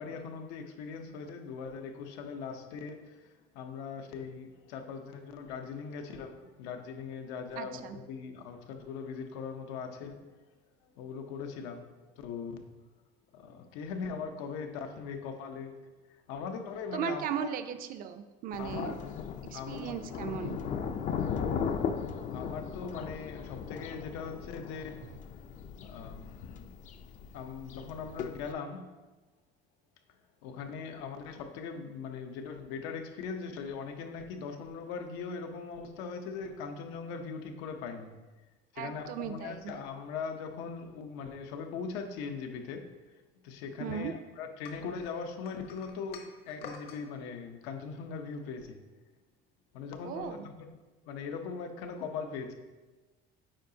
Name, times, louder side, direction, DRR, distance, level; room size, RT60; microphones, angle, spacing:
voice 1, 0.0-10.2 11.0-11.9 12.2-12.6 13.3-15.8 16.3-17.5 18.6-19.0 19.5-20.0 22.3-25.1 25.8-26.7 27.3-28.9 30.4-38.1 38.7-42.9 43.4-48.8 49.7-50.7 51.0-52.6, left 5 dB, 85° left, 5 dB, 0.7 m, -40 dB
voice 2, 7.5-8.0 16.9-18.9 19.5-20.6 38.8-39.7 43.8-44.1 50.0-50.5, right 8 dB, 50° right, 9 dB, 0.5 m, -37 dB
Thunder, 18.5-28.5, left 7 dB, 40° left, 0.4 m, -37 dB
sound 1, 44.6-47.0, left 5 dB, 60° left, 1.0 m, -48 dB
8.8 x 4.8 x 2.7 m, 1.2 s
cardioid pair, 140°, 19 cm